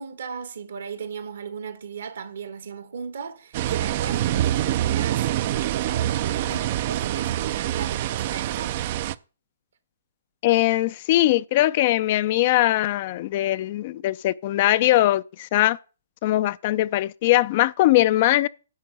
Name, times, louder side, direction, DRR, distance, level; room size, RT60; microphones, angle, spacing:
voice 1, 0.0-8.8, right 6 dB, 70° right, 1.4 m, -36 dB
sound 1, 3.5-9.1, right 13 dB, 45° right, 0.4 m, -25 dB
voice 2, 10.4-15.8 16.2-18.5, left 15 dB, 45° left, 0.4 m, -21 dB
10.5 x 3.8 x 7.5 m
hypercardioid pair, 130°, 0 cm